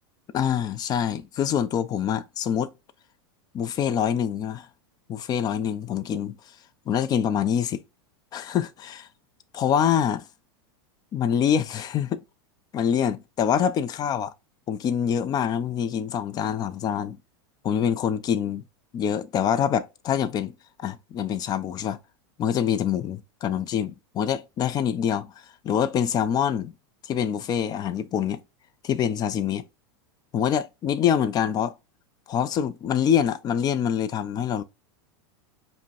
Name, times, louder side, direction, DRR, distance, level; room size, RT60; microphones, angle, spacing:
voice 1, 0.3-2.7 3.5-4.7 5.1-6.4 6.9-7.8 8.3-9.1 9.5-10.2 11.1-12.2 12.7-14.3 14.7-17.2 17.6-18.6 18.9-22.0 22.4-25.3 25.6-26.7 27.0-28.4 28.8-29.6 30.3-31.7 32.3-34.6, left 8 dB, 30° left, 0.5 m, -25 dB
5.0 x 2.1 x 4.1 m
supercardioid pair, 130°, 14 cm